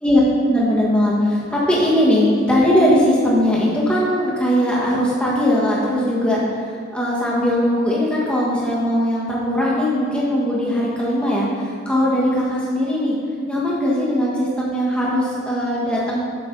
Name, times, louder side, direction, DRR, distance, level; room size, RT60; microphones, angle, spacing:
voice 1, 0.5-6.4 6.9-13.1 13.5-16.2, equal, 5° left, -6 dB, 1.6 m, -19 dB
8.4 x 7.2 x 4.0 m, 2.1 s
head